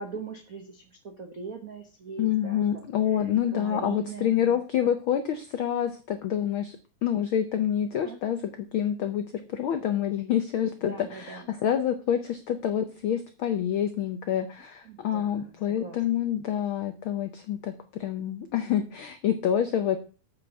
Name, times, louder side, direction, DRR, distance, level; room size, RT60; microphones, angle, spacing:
voice 1, 0.0-4.6 7.9-8.2 10.9-11.5 14.8-16.0, right 5 dB, 80° right, 4 dB, 0.7 m, -41 dB
voice 2, 2.2-6.8 7.0-8.4 8.7-20.0, left 9 dB, 90° left, 8 dB, 1.1 m, -27 dB
8.4 x 5.1 x 7.0 m, 0.36 s
omnidirectional pair, 3.3 m